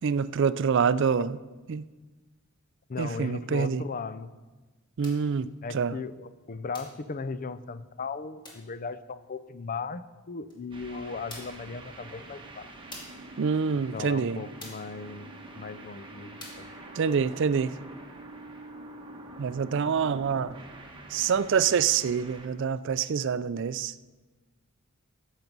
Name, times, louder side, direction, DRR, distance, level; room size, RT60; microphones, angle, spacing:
voice 1, 0.0-1.4 1.7-1.8 3.0-3.8 5.0-5.9 13.4-14.4 17.0-17.7 19.4-20.5 21.1-23.9, right 6 dB, 60° right, 15 dB, 0.4 m, -26 dB
voice 2, 2.9-4.3 5.6-12.7 13.9-16.8, left 4 dB, 40° left, 14 dB, 0.5 m, -37 dB
sound 1, 5.0-5.3 6.7-7.0 8.4-8.7 10.5-10.6 11.3-11.7 12.9-13.3 14.6-14.9 16.4-16.7, left 1 dB, 20° left, 2.5 m, -46 dB
sound 2, 10.7-22.5, right 2 dB, 25° right, 1.2 m, -46 dB
14.0 x 7.3 x 5.4 m, 1.2 s
head